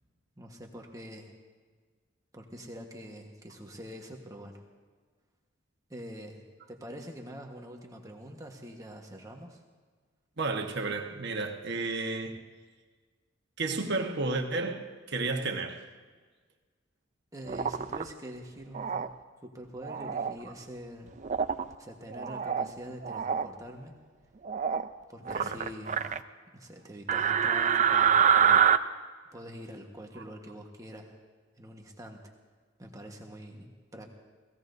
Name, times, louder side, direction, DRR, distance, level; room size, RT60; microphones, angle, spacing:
voice 1, 0.4-1.3 2.3-4.6 5.9-6.4 6.7-9.6 17.3-19.1 19.4-21.1 21.8-24.0 25.1-26.1 26.5-28.7 29.3-31.2 31.6-32.2 32.8-34.1, equal, 15° right, 1.3 m, -45 dB
voice 2, 10.4-12.4 13.6-15.8 25.3-25.6 26.0-26.1 30.1-30.2, right 3 dB, 60° right, 1.3 m, -32 dB
sound 1, 17.5-18.0 18.7-19.1 19.8-20.3 21.2-21.6 22.1-22.7 23.0-23.5 24.4-24.9 25.3-26.2 27.1-28.8, right 7 dB, 40° right, 0.5 m, -25 dB
29.0 x 18.0 x 2.7 m
head